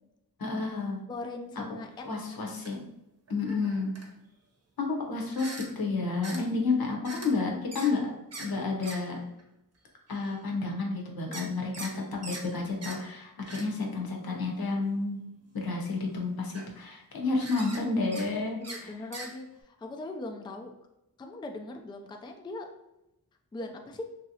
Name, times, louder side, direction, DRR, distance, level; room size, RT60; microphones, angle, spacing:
voice 1, 0.4-1.0 1.6-1.7 2.0-2.8 3.3-3.9 4.8-9.2 10.1-15.2 15.5-18.9, left 3 dB, 80° left, 0 dB, 0.8 m, -31 dB
voice 2, 1.1-1.9 2.3-2.4 11.3-11.6 18.7-20.7 21.2-22.7 23.5-24.0, left 2 dB, 15° left, 4 dB, 0.3 m, -40 dB
sound 1, 1.9-2.0 2.6-2.7 3.3-4.1 5.3-5.7 6.2-6.4 7.0-7.3 7.7-7.9 8.3-8.5 8.8-9.0 9.4-9.5 10.1-10.4 11.3-11.9 12.2-12.4 12.8-13.0 13.5-13.6 14.3-14.4 15.2-15.5 16.1-16.2 16.4-16.8 17.4-17.8 18.1-18.3 18.6-18.8 19.1-19.3, right 2 dB, 45° right, 0.7 m, -42 dB
3.0 x 2.7 x 2.7 m, 0.87 s
wide cardioid pair, 85°, 36 cm